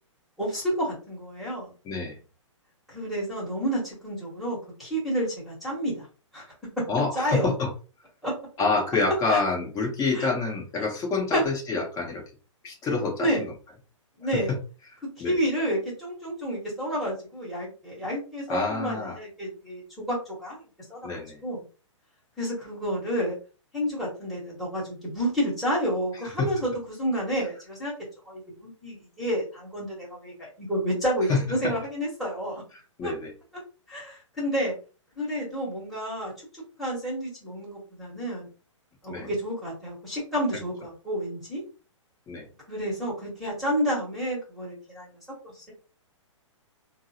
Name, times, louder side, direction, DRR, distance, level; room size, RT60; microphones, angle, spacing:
voice 1, 0.4-1.7 2.9-6.0 6.3-6.4 6.8-6.9 7.1-7.5 8.2-8.3 9.3-9.4 10.1-10.3 11.3-11.4 13.2-13.4 14.2-14.5 15.0-20.6 20.9-21.6 22.4-23.4 23.7-27.9 28.2-32.6 33.0-33.1 33.9-34.7 35.2-38.5 39.0-41.6 42.7-45.1 45.4-45.7, equal, ahead, -6 dB, 1.5 m, -30 dB
voice 2, 1.8-2.2 6.9-7.7 8.6-12.2 12.6-13.5 14.5-14.6 15.2-15.4 18.5-19.2 21.0-21.4 26.4-26.5 31.3-31.4 31.6-31.7 32.7-33.3 39.1-39.3 40.5-40.6 42.3-42.5, left 4 dB, 20° left, 0 dB, 0.9 m, -27 dB
3.5 x 2.0 x 2.8 m, 0.35 s
figure-of-eight pair, 120°, 16 cm